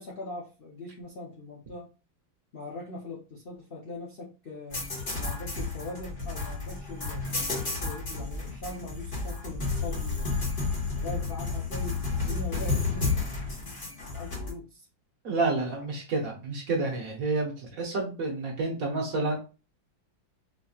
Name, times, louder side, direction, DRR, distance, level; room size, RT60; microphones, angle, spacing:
voice 1, 0.0-1.9 2.5-4.8 5.2-7.2 7.6-10.5 10.9-13.2 13.4-14.9 15.4-15.9, left 2 dB, 60° left, -3 dB, 0.6 m, -41 dB
sound 1, 4.7-14.5, left 3 dB, 30° left, 1.7 m, -31 dB
voice 2, 15.2-19.4, right 3 dB, 55° right, -1 dB, 1.1 m, -29 dB
4.8 x 2.8 x 2.4 m, 0.32 s
omnidirectional pair, 2.2 m